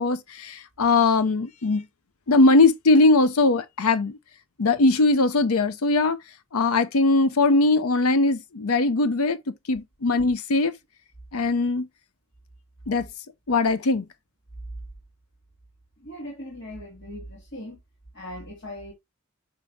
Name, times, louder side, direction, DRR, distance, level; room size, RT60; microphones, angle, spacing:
voice 1, 0.0-1.8 2.3-4.2 4.6-6.2 6.5-10.7 11.3-11.9 12.9-13.1 13.5-14.0, left 3 dB, 90° left, 0.7 m, -20 dB
voice 2, 16.0-17.8 18.1-18.9, left 1 dB, 55° left, 2.3 m, -39 dB
6.6 x 5.2 x 2.7 m
head